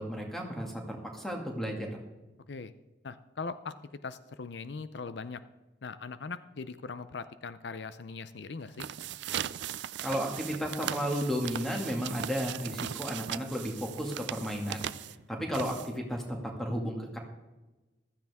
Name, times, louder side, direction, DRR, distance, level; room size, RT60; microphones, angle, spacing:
voice 1, 0.0-2.0 10.0-14.9 15.3-17.2, equal, ahead, 1 dB, 2.0 m, -33 dB
voice 2, 3.0-3.7 4.0-5.4 5.8-8.9, left 4 dB, 75° left, 13 dB, 0.6 m, -40 dB
frotar folio con mano, 8.6-16.2, right 10 dB, 75° right, 0.4 m, -39 dB
15.0 x 13.0 x 3.6 m, 1.1 s
head